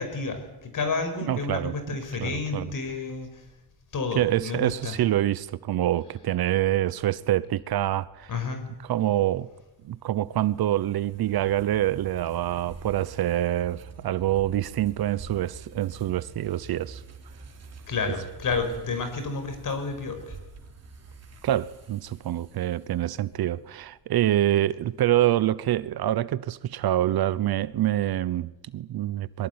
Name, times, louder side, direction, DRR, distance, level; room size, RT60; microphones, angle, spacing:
voice 1, 0.0-3.4 3.9-5.0 8.3-8.6 17.9-20.4, left 4 dB, 50° left, 5.7 m, -30 dB
voice 2, 1.2-2.7 4.1-8.3 8.8-9.5 9.8-17.0 21.4-29.5, right 13 dB, 60° right, 0.9 m, -26 dB
sound 1, 9.9-23.3, right 4 dB, 40° right, 3.2 m, -46 dB
23.0 x 20.5 x 9.7 m
cardioid pair, 125°, 41 cm